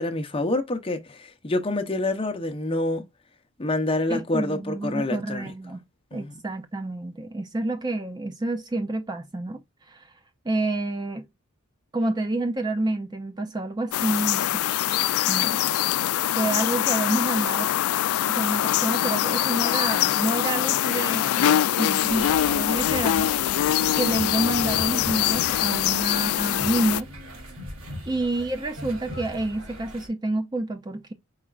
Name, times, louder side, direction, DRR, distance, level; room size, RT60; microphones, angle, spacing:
voice 1, 0.0-3.0 3.6-5.4 6.1-6.4, left 2 dB, 25° left, 0.8 m, -27 dB
voice 2, 4.1-5.8 6.1-10.1 10.4-11.2 11.9-14.8 15.3-15.6 16.3-17.7 18.3-23.3 24.0-27.1 28.1-31.1, right 2 dB, 20° right, 0.4 m, -28 dB
sound 1, 13.9-27.0, left 12 dB, 80° left, 0.3 m, -23 dB
sound 2, 22.0-30.1, equal, 90° right, 3.0 m, -39 dB
4.8 x 4.3 x 2.3 m
head